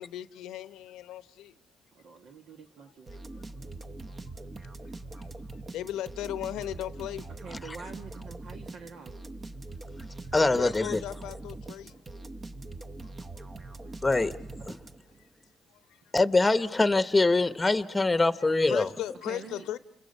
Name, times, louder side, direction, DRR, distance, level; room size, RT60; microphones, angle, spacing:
voice 1, 0.0-1.5 4.1-4.4 5.0-5.3 5.5-7.3 10.2-12.0 13.4-13.5 13.8-13.9 15.2-15.3 15.7-16.0 18.4-19.8, left 12 dB, 90° left, 0.8 m, -38 dB
voice 2, 1.9-3.7 7.4-9.2 19.2-19.7, right 5 dB, 75° right, 1.4 m, -46 dB
sound 1, 3.1-15.3, right 2 dB, 35° right, 1.0 m, -43 dB
voice 3, 10.3-11.0 14.0-14.3 14.7-14.8 16.1-18.9, left 3 dB, 15° left, 0.9 m, -23 dB
29.5 x 28.5 x 5.4 m
cardioid pair, 90°, 0 cm